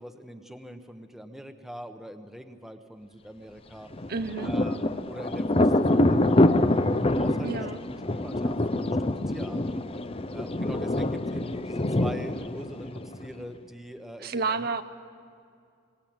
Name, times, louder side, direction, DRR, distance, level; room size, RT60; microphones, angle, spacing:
voice 1, 0.0-3.9 4.4-7.8 8.1-9.8 10.3-14.7, equal, ahead, 7 dB, 1.0 m, -43 dB
Thunder, 3.9-13.4, left 1 dB, 30° left, 0.6 m, -25 dB
voice 2, 4.1-4.5 7.4-7.8 14.2-14.8, right 4 dB, 50° right, 8 dB, 0.7 m, -30 dB
26.0 x 18.0 x 8.8 m, 2.3 s
head